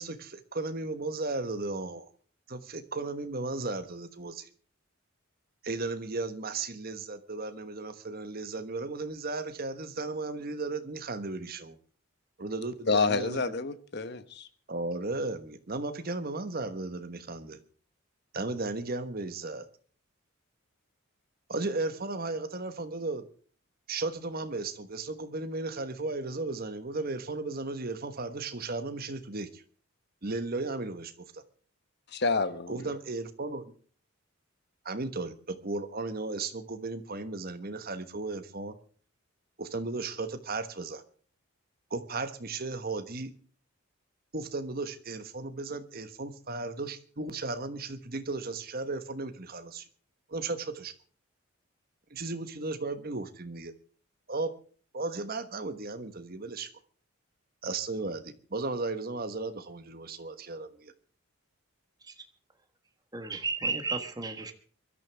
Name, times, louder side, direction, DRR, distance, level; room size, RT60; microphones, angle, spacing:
voice 1, 0.0-2.0 2.5-4.5 5.6-11.8 12.4-13.4 14.7-17.6 18.3-19.7 21.5-23.3 23.9-29.6 30.2-31.4 32.7-33.7 34.8-38.7 39.6-41.0 41.9-43.3 44.3-49.9 50.3-50.9 52.1-53.7 54.3-54.5 54.9-56.7 57.6-60.9, right 3 dB, 45° right, 10 dB, 1.3 m, -35 dB
voice 2, 12.9-14.5 32.1-32.9, left 4 dB, 50° left, 11 dB, 1.2 m, -28 dB
voice 3, 63.1-64.5, right 4 dB, 20° right, 6 dB, 1.4 m, -33 dB
23.5 x 12.5 x 3.5 m, 0.42 s
head